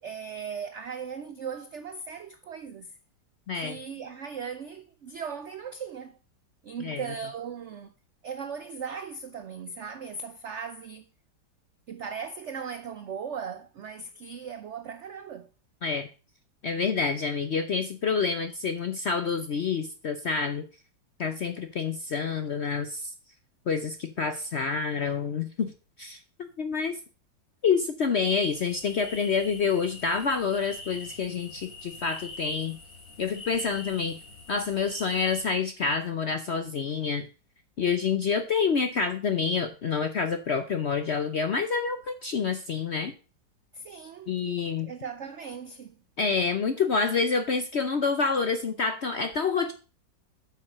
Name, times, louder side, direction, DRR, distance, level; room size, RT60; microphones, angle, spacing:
voice 1, 0.0-2.9 3.5-6.2 6.6-7.9 8.2-11.1 11.9-15.5 43.7-44.3 44.8-45.9, right 6 dB, 90° right, 0.6 m, -38 dB
voice 2, 3.5-3.8 6.8-7.0 15.8-16.1 16.6-20.6 21.2-23.1 23.7-25.7 26.0-26.2 26.6-27.0 27.6-32.8 33.2-34.2 34.5-37.3 37.8-43.1 44.3-44.9 46.2-49.7, left 5 dB, 60° left, 0.7 m, -27 dB
sound 1, 28.5-35.5, left 2 dB, 75° left, 4.0 m, -44 dB
8.2 x 5.9 x 6.0 m
omnidirectional pair, 2.0 m